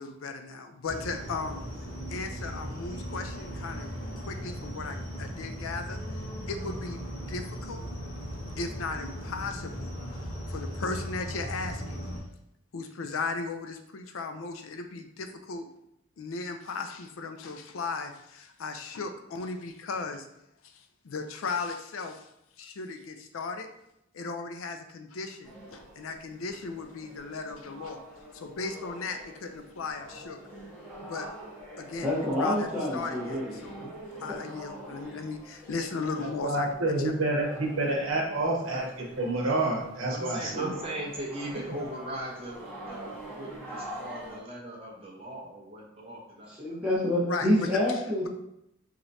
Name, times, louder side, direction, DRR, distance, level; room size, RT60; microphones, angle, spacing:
voice 1, 0.0-1.6 2.1-6.0 6.5-7.0 7.3-7.9 8.6-12.1 12.7-15.7 16.2-20.3 20.6-22.3 22.6-23.7 24.1-28.0 28.3-30.4 31.0-31.3 31.8-32.7 32.9-33.9 34.2-36.7 43.2-43.3 47.3-47.7 48.2-48.3, left 4 dB, 85° left, 6 dB, 0.5 m, -36 dB
sound 1, 0.8-12.2, equal, 40° left, 1.3 m, -38 dB
sound 2, 25.4-44.4, right 1 dB, 10° left, 1.4 m, -44 dB
voice 2, 32.0-33.6 34.3-34.4 34.8-35.0 40.5-40.7 46.6-48.3, left 1 dB, 5° right, -7 dB, 1.3 m, -28 dB
voice 3, 36.2-40.7, right 2 dB, 75° right, -2 dB, 1.1 m, -28 dB
voice 4, 38.4-38.8 40.1-42.6 42.9-46.8, right 1 dB, 30° right, -3 dB, 1.0 m, -39 dB
4.9 x 3.0 x 2.7 m, 0.81 s
head